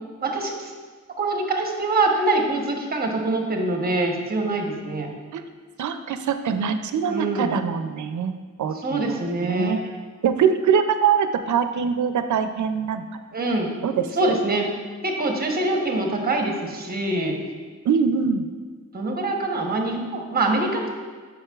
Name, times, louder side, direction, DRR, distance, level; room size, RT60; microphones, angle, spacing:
voice 1, 0.2-0.7 1.2-5.1 7.1-7.5 8.8-9.8 13.3-13.7 14.2-14.7 15.0-17.4 18.9-20.9, right 2 dB, 30° right, 2 dB, 0.9 m, -24 dB
voice 2, 5.8-8.3 8.6-9.8 10.2-13.0 13.8-14.4 17.8-18.5, right 7 dB, 80° right, 9 dB, 0.4 m, -23 dB
8.6 x 5.2 x 2.3 m, 1.5 s
wide cardioid pair, 100°, 29 cm